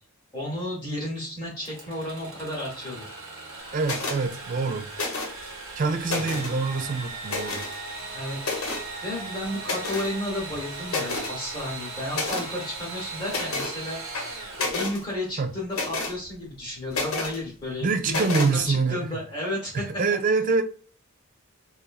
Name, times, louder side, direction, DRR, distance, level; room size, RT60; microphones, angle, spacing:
voice 1, 0.3-3.1 6.1-6.4 8.0-8.4 9.0-14.0 14.6-19.9, left 1 dB, 20° left, 0.9 m, -33 dB
Engine / Sawing, 1.6-15.3, right 3 dB, 60° right, 0.9 m, -38 dB
voice 2, 3.7-4.9 5.8-7.7 15.4-15.5 17.8-19.0 19.7-20.6, right 4 dB, 35° right, 0.3 m, -25 dB
sound 1, 3.8-4.2 4.9-5.5 5.9-6.6 7.3-7.8 8.4-8.9 9.6-10.1 10.5-10.6 10.9-11.3 12.1-12.5 13.3-13.8 14.1-15.0 15.7-16.2 16.9-17.4 18.1-18.5, left 3 dB, 75° left, 0.8 m, -30 dB
3.0 x 2.4 x 2.3 m
head